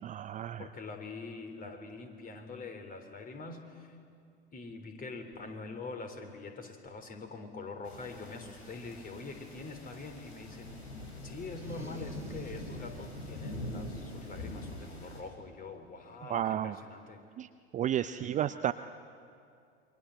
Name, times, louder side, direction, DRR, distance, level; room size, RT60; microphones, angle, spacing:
voice 1, 0.0-0.6 16.3-16.7 17.4-17.5 17.7-18.7, right 11 dB, 25° right, 11 dB, 0.6 m, -32 dB
voice 2, 0.6-4.0 4.5-10.8 11.2-17.2 18.2-18.4, left 3 dB, 25° left, 6 dB, 3.7 m, -44 dB
sound 1, 7.8-15.2, left 1 dB, 75° left, 6.0 m, -43 dB
sound 2, 11.4-13.1, right 3 dB, 10° right, 1.9 m, -52 dB
28.5 x 23.5 x 7.8 m, 2.4 s
figure-of-eight pair, 85°, 32 cm